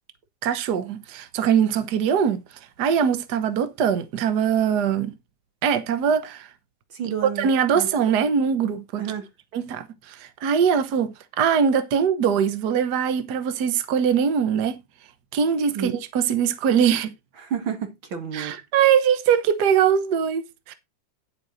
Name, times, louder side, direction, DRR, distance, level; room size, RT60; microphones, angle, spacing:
voice 1, 0.4-2.4 2.8-5.1 5.6-6.5 7.4-9.1 9.5-14.8 15.3-17.1 18.3-20.7, right 7 dB, 75° right, 0.9 m, -22 dB
voice 2, 6.9-7.5 7.8-7.9 9.0-9.3 15.7-15.9 17.4-18.5, right 7 dB, 45° right, 2.6 m, -30 dB
10.0 x 8.1 x 4.0 m
omnidirectional pair, 3.4 m